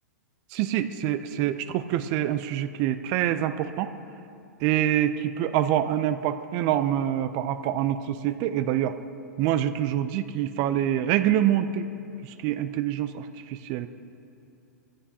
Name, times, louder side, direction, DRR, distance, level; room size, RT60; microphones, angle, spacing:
voice 1, 0.5-3.9 4.6-9.0 9.4-11.9 12.2-13.9, right 11 dB, 40° right, 11 dB, 0.5 m, -26 dB
19.0 x 15.5 x 2.9 m, 2.6 s
hypercardioid pair, 115°, 9 cm